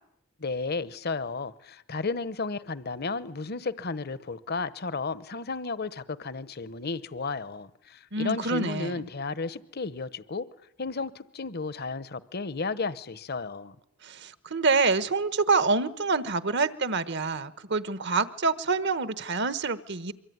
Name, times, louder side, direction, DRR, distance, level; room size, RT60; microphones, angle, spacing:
voice 1, 0.4-10.5 10.8-13.8, left 4 dB, 50° left, 1.0 m, -33 dB
voice 2, 8.1-9.0 14.0-20.1, right 4 dB, 55° right, 1.2 m, -26 dB
25.5 x 24.0 x 9.5 m
head